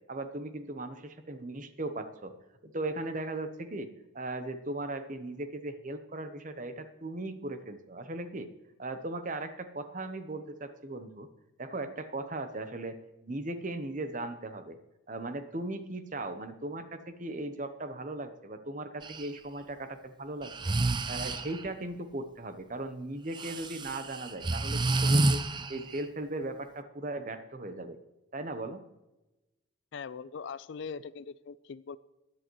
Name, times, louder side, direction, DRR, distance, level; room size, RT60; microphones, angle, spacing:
voice 1, 0.1-2.3 2.6-3.9 4.1-8.5 8.8-11.3 11.6-14.8 15.1-20.7 21.1-25.4 25.7-28.0 28.3-28.8, right 2 dB, 35° right, 9 dB, 0.9 m, -38 dB
Breathing, 19.0-19.3 20.4-21.7 23.3-26.0, right 2 dB, 20° right, 0.4 m, -29 dB
voice 2, 29.9-32.0, left 5 dB, 55° left, 17 dB, 0.4 m, -41 dB
16.5 x 10.5 x 3.1 m, 0.99 s
head